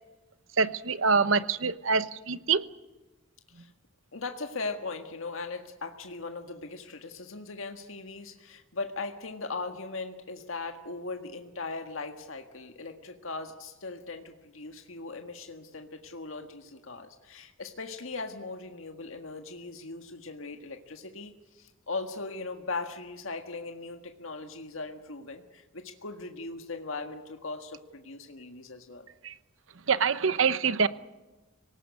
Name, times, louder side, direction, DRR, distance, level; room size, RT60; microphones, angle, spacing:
voice 1, 0.6-2.6 29.2-29.3 29.9-30.9, right 5 dB, 75° right, 14 dB, 0.9 m, -25 dB
voice 2, 4.1-29.1, left 3 dB, 80° left, 5 dB, 1.7 m, -39 dB
25.5 x 18.5 x 9.6 m, 1.1 s
head